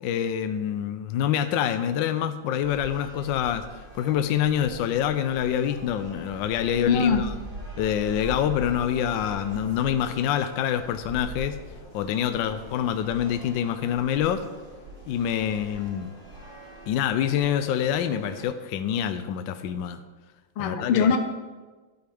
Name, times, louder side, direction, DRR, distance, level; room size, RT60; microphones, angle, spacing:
voice 1, 0.0-3.6 3.9-7.3 7.8-11.6 11.9-14.4 15.1-16.1 16.9-20.0 20.6-21.1, left 9 dB, 75° left, 9 dB, 1.2 m, -26 dB
sound 1, 2.6-18.4, right 1 dB, 35° right, 4.1 m, -42 dB
voice 2, 6.8-7.3 20.6-21.2, left 6 dB, 90° left, 6 dB, 1.8 m, -22 dB
13.0 x 8.0 x 3.4 m, 1.3 s
omnidirectional pair, 2.3 m